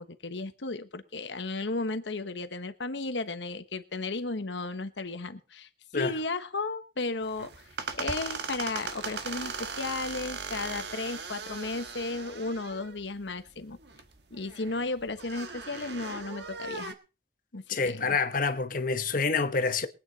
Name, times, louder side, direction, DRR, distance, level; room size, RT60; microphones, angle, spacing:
voice 1, 0.0-7.5 8.0-13.8 14.3-16.9 17.5-18.2, left 3 dB, 90° left, 1.2 m, -34 dB
sound 1, 7.2-16.9, right 4 dB, 70° right, 1.6 m, -39 dB
voice 2, 17.7-19.9, left 4 dB, 50° left, 1.2 m, -27 dB
22.5 x 9.0 x 4.1 m
head